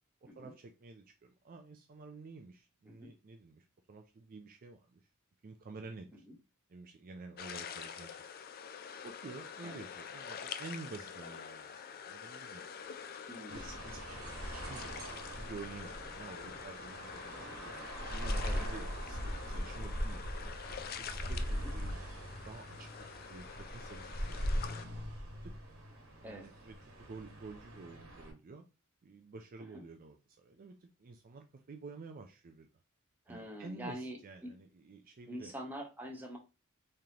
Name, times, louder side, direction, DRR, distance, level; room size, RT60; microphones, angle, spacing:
voice 1, 0.2-5.1 5.4-6.2 6.7-8.3 9.0-12.6 13.5-17.5 18.1-20.5 21.0-22.0 22.3-24.9 25.4-25.6 26.2-28.6 29.0-32.7 33.3-35.5, right 3 dB, 40° right, 0.4 m, -50 dB
sound 1, 7.4-24.9, left 7 dB, 45° left, 0.3 m, -46 dB
voice 2, 13.3-13.7 18.4-18.6 21.5-21.7 26.2-26.5 29.7-29.8 33.3-34.2 34.4-34.5 35.3-36.4, equal, 10° right, 1.0 m, -45 dB
sound 2, 13.5-28.3, equal, 70° right, 1.3 m, -40 dB
3.8 x 3.2 x 2.8 m
head